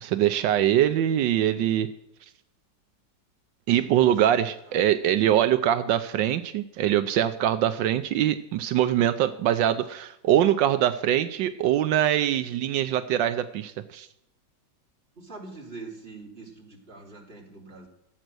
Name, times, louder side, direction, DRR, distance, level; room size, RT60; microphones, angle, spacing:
voice 1, 0.0-1.9 3.7-14.1, right 11 dB, 80° right, 11 dB, 1.3 m, -23 dB
voice 2, 3.8-4.4 4.7-4.8 5.3-5.5 15.2-17.9, right 3 dB, 30° right, 0 dB, 3.0 m, -44 dB
16.0 x 7.9 x 6.2 m, 0.82 s
omnidirectional pair, 2.0 m